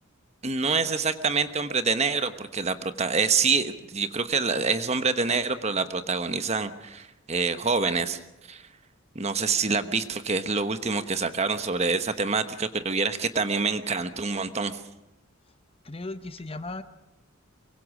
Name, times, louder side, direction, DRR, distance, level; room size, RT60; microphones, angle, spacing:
voice 1, 0.4-8.2 8.5-8.6 9.1-14.8, right 4 dB, 30° right, 10 dB, 1.1 m, -26 dB
voice 2, 15.8-16.8, left 2 dB, 25° left, 11 dB, 0.8 m, -36 dB
23.5 x 23.5 x 6.1 m, 0.91 s
head